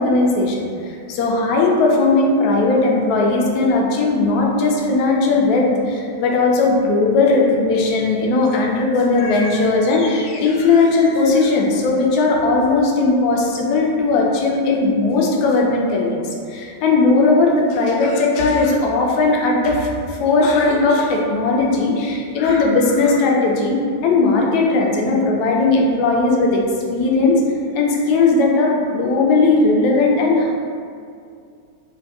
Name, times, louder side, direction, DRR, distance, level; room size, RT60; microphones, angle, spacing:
voice 1, 0.0-26.6 26.9-27.4 27.7-30.5, left 3 dB, 45° left, -1 dB, 0.5 m, -17 dB
2.6 x 2.2 x 3.4 m, 2.3 s
figure-of-eight pair, 90°, 0 cm